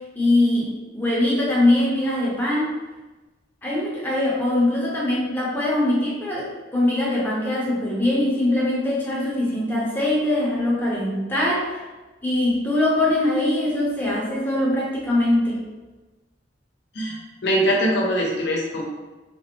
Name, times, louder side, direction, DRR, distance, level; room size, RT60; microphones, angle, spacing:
voice 1, 0.1-2.8 3.6-11.8 12.2-15.6, left 1 dB, 10° left, -6 dB, 0.7 m, -22 dB
voice 2, 16.9-18.8, equal, 65° left, -2 dB, 0.7 m, -22 dB
3.2 x 2.1 x 2.9 m, 1.2 s
head